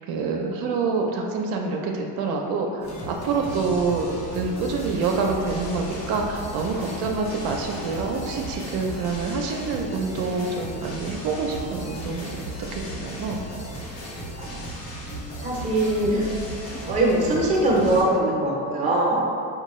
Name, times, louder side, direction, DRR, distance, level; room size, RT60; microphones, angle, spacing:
voice 1, 0.1-4.1 4.3-13.4, right 4 dB, 70° right, 1 dB, 0.5 m, -27 dB
sound 1, 2.8-18.0, equal, 85° left, 1.0 m, -35 dB
voice 2, 14.4-14.9 15.4-16.3 16.6-19.2, right 1 dB, 20° right, -4 dB, 0.7 m, -22 dB
4.4 x 2.2 x 3.0 m, 2.5 s
cardioid pair, 115°, 38 cm